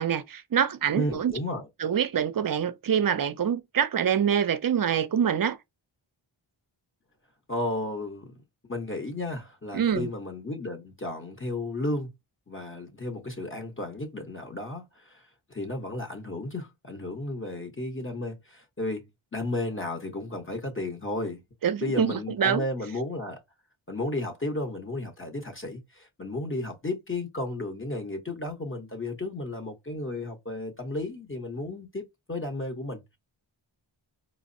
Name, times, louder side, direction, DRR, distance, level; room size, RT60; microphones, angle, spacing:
voice 1, 0.0-1.3 1.8-5.6 9.7-10.1 21.6-22.6, right 8 dB, 45° right, 0.5 m, -25 dB
voice 2, 0.9-1.7 7.5-8.3 8.7-12.1 12.5-19.0 19.3-21.4 21.8-23.4 23.9-33.2, left 2 dB, 25° left, 0.8 m, -33 dB
4.9 x 2.0 x 2.5 m
wide cardioid pair, 80°, 47 cm